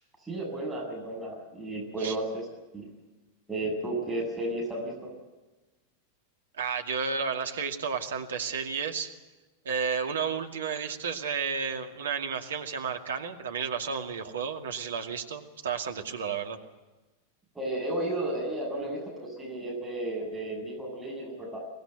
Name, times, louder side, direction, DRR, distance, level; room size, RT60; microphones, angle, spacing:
voice 1, 0.2-2.4 2.7-2.9 3.5-5.1 17.5-21.6, right 1 dB, 5° right, -2 dB, 7.8 m, -33 dB
voice 2, 6.6-9.1 9.6-16.6, right 6 dB, 65° right, 5 dB, 2.2 m, -32 dB
23.5 x 19.5 x 8.1 m, 1.1 s
figure-of-eight pair, 90°, 0 cm